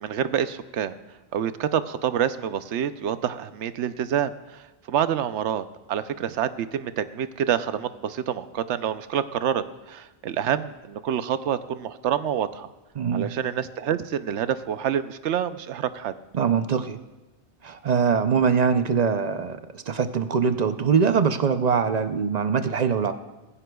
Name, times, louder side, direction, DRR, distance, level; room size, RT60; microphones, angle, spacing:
voice 1, 0.0-0.9 1.3-12.7 13.1-16.1, right 9 dB, 90° right, 12 dB, 0.9 m, -27 dB
voice 2, 13.0-13.3 16.3-17.0 17.6-23.1, right 6 dB, 45° right, 9 dB, 0.6 m, -23 dB
20.0 x 15.5 x 2.3 m, 1.1 s
omnidirectional pair, 1.1 m